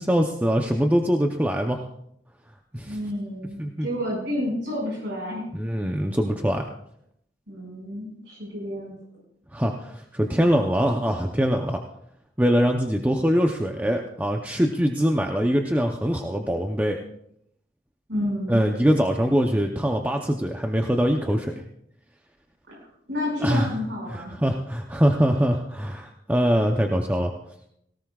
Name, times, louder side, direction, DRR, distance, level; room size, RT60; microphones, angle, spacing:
voice 1, 0.0-1.8 2.7-3.0 3.6-3.9 5.5-6.7 9.5-11.8 12.4-17.0 18.5-21.6 23.4-23.7 24.1-27.3, equal, 10° right, 2 dB, 0.7 m, -23 dB
voice 2, 2.8-5.4 7.5-8.9 18.1-18.6 22.7-24.4, left 1 dB, 75° right, -3 dB, 5.6 m, -30 dB
18.0 x 17.5 x 2.4 m, 0.73 s
head